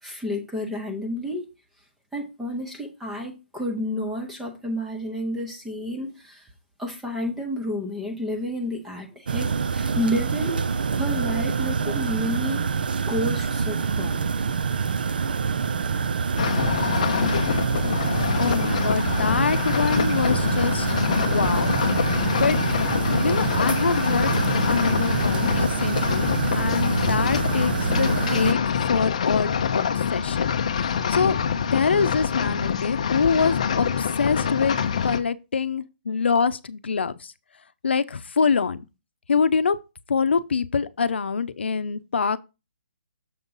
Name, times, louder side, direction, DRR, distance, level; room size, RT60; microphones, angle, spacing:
voice 1, 0.0-1.5 2.1-6.5 6.8-12.8 13.1-14.2, left 1 dB, 5° right, 0.7 m, -30 dB
sound 1, 9.3-28.5, right 5 dB, 55° right, 0.5 m, -26 dB
sound 2, 16.4-35.2, left 7 dB, 35° left, 0.5 m, -25 dB
voice 2, 18.4-21.8 22.4-22.6 23.2-24.3 24.7-26.3 26.5-30.5 30.8-31.4 31.6-37.3 37.8-38.8 39.3-39.8 40.1-42.4, left 5 dB, 80° left, 0.6 m, -25 dB
6.9 x 4.0 x 5.4 m
hypercardioid pair, 180°, 6 cm